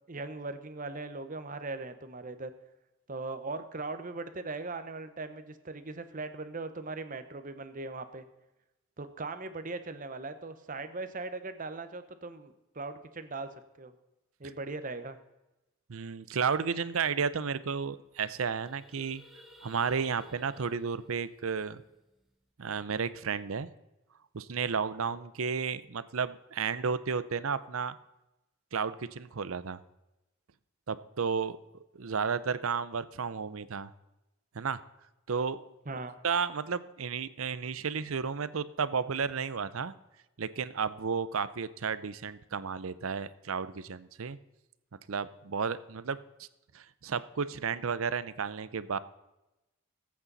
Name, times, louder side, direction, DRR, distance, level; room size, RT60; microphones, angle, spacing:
voice 1, 0.1-2.5 3.1-8.2 9.0-13.9 14.4-15.2 35.9-36.2, right 3 dB, 40° right, 10 dB, 1.0 m, -39 dB
voice 2, 15.9-19.2 19.6-21.8 22.6-23.7 24.3-28.0 28.7-29.8 30.9-31.6 31.9-33.9 34.5-34.8 35.3-39.9 40.4-44.4 45.1-46.5 46.7-49.0, right 6 dB, 75° right, 16 dB, 0.6 m, -33 dB
sound 1, 18.1-22.4, equal, ahead, 1.1 m, -58 dB
19.5 x 8.7 x 4.1 m, 0.98 s
head